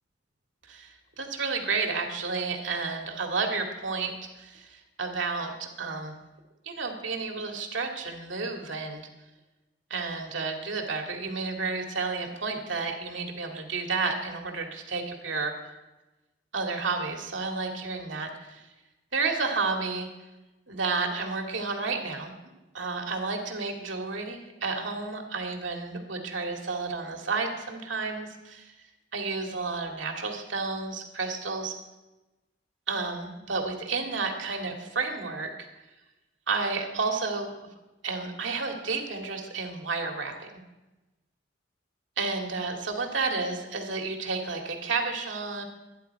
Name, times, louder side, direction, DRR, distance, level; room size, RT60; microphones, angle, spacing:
voice 1, 0.7-6.2 6.6-9.0 9.9-15.5 16.5-18.7 19.1-20.1 20.7-22.3 22.7-28.7 29.1-31.7 32.9-35.5 36.5-37.5 38.0-40.5 42.2-45.6, right 4 dB, 80° right, 3 dB, 2.2 m, -31 dB
24.5 x 10.5 x 4.7 m, 1.1 s
head